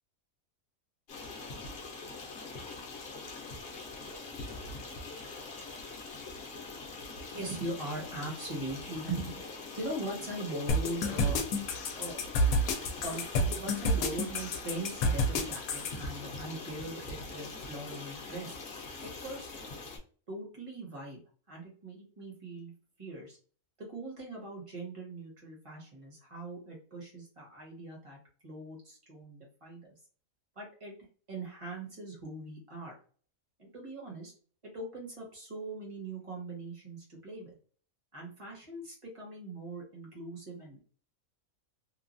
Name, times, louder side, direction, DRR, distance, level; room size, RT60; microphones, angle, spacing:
Stream, 1.1-20.0, left 3 dB, 50° left, 0.9 m, -43 dB
voice 1, 7.3-9.4 9.8-11.4 11.9-12.2 13.0-18.6 19.0-19.5 20.3-21.2 21.5-22.7 23.0-23.4 23.8-28.2 28.4-29.8 30.5-30.9 31.3-32.9 33.6-34.3 34.6-37.5 38.1-40.8, right 2 dB, 25° right, -2 dB, 1.1 m, -41 dB
sound 1, 10.7-15.9, left 1 dB, 85° left, 1.0 m, -29 dB
3.1 x 2.2 x 2.5 m, 0.42 s
omnidirectional pair, 1.5 m